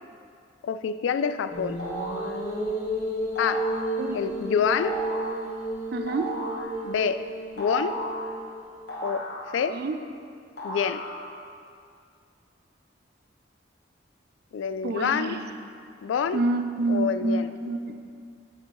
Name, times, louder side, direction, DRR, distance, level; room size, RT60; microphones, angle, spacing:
voice 1, 0.6-1.8 3.4-3.7 4.1-5.0 6.8-7.3 7.6-8.0 9.0-9.3 9.5-9.8 10.6-11.1 14.5-15.4 16.0-16.4 16.9-17.5, left 7 dB, 75° left, 12 dB, 0.3 m, -27 dB
sound 1, 1.5-8.9, right 1 dB, 40° left, 1.4 m, -32 dB
sound 2, 1.8-2.3 3.3-3.9 4.7-5.3 6.1-6.7 7.6-8.3 8.9-9.8 10.6-11.4, right 1 dB, 55° left, 1.1 m, -35 dB
voice 2, 5.9-6.3 9.7-10.0 14.8-15.5 16.3-18.0, right 2 dB, 55° right, 8 dB, 0.4 m, -28 dB
7.9 x 6.9 x 3.1 m, 2.3 s
head